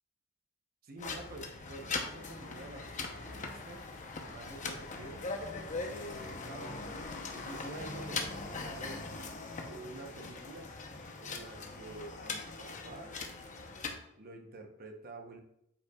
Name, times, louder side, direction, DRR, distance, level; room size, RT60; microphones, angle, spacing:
voice 1, 0.8-3.9 4.3-5.3 5.8-9.0 9.7-10.7 11.2-13.1 14.2-15.4, right 2 dB, 45° right, 3 dB, 0.8 m, -48 dB
sound 1, 1.0-14.0, left 3 dB, 40° left, 0.7 m, -41 dB
8.3 x 5.6 x 2.3 m, 0.79 s
head